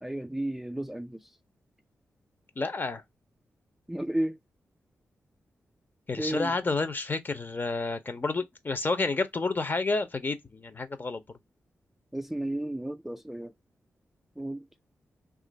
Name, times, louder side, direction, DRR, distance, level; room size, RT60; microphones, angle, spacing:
voice 1, 0.0-1.3 3.9-4.4 6.2-6.5 12.1-13.5 14.4-14.7, right 1 dB, 5° right, 0.3 m, -33 dB
voice 2, 2.6-3.0 6.1-11.4, left 3 dB, 35° left, 0.6 m, -30 dB
2.9 x 2.4 x 3.9 m
cardioid pair, 65°, 5 cm